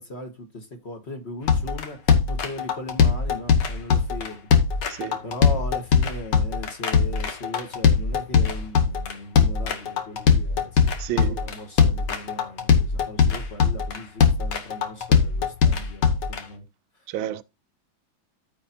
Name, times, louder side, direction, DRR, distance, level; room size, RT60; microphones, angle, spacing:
voice 1, 0.0-4.5 5.2-16.6, left 2 dB, 35° left, 1.5 m, -38 dB
sound 1, 1.5-16.4, left 6 dB, 65° left, 1.8 m, -20 dB
voice 2, 11.0-11.5 17.1-17.4, right 12 dB, 80° right, 1.3 m, -31 dB
14.0 x 4.8 x 2.7 m
omnidirectional pair, 2.2 m